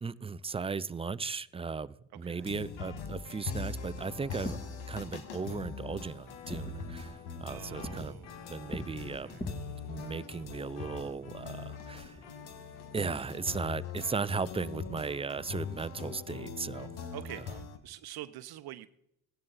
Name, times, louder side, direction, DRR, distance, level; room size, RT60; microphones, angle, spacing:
voice 1, 0.0-4.6 4.9-8.2 8.5-9.4 9.9-12.2 12.9-16.9, right 5 dB, 15° right, 0.4 m, -36 dB
sound 1, 2.4-17.8, left 5 dB, 75° left, 1.5 m, -42 dB
Fireworks, 4.3-13.6, equal, 20° left, 2.6 m, -47 dB
voice 2, 7.5-8.4 9.2-9.4 17.1-18.9, right 13 dB, 60° right, 0.7 m, -45 dB
16.0 x 10.5 x 4.0 m
supercardioid pair, 75°, 43 cm